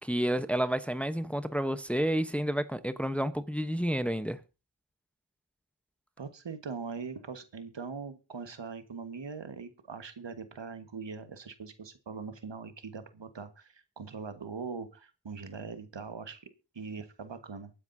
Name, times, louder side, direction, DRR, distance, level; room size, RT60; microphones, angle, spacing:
voice 1, 0.0-4.4, equal, 5° left, 0.9 m, -30 dB
voice 2, 6.2-16.5 16.7-17.7, right 5 dB, 65° right, 1.5 m, -41 dB
23.5 x 9.7 x 2.7 m
cardioid pair, 40°, 46 cm